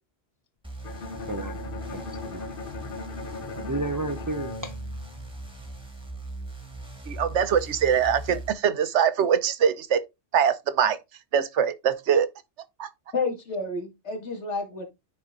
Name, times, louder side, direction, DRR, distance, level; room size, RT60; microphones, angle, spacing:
sound 1, 0.6-8.5, right 2 dB, 5° right, 1.6 m, -39 dB
Bowed string instrument, 0.8-5.8, left 4 dB, 55° left, 1.1 m, -38 dB
voice 1, 1.9-2.4 3.4-4.7, right 2 dB, 25° right, 0.5 m, -32 dB
voice 2, 7.1-10.0 10.3-11.0 11.3-12.3 12.8-12.9, right 8 dB, 85° right, 1.1 m, -23 dB
voice 3, 13.1-14.8, left 3 dB, 85° left, 2.5 m, -30 dB
10.0 x 4.4 x 3.8 m
omnidirectional pair, 1.2 m